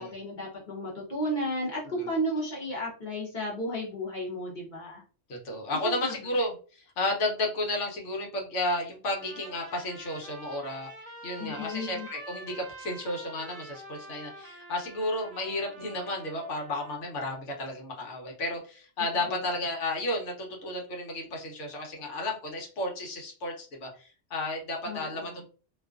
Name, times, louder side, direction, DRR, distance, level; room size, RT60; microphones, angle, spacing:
voice 1, 0.0-5.0 5.8-6.1 11.4-12.1 19.3-19.4 24.8-25.3, equal, 45° left, -3 dB, 0.9 m, -33 dB
voice 2, 5.3-6.5 7.0-10.9 11.2-25.5, left 1 dB, 75° left, 1 dB, 1.1 m, -32 dB
Trumpet, 9.1-17.0, right 2 dB, 35° right, 0.8 m, -46 dB
2.6 x 2.3 x 2.3 m, 0.37 s
omnidirectional pair, 1.3 m